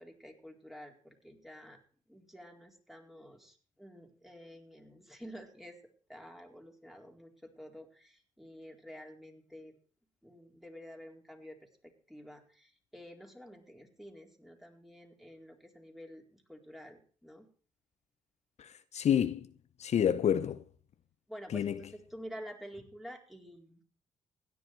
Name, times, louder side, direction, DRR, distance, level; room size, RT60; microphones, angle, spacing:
voice 1, 0.0-1.8 2.1-5.8 6.1-9.8 10.2-11.6 11.8-17.5 21.3-23.8, equal, ahead, 4.1 m, -50 dB
voice 2, 18.6-19.5 19.8-20.6 21.5-21.8, left 9 dB, 55° left, 0.8 m, -29 dB
16.5 x 10.5 x 4.6 m
supercardioid pair, 55°, 13 cm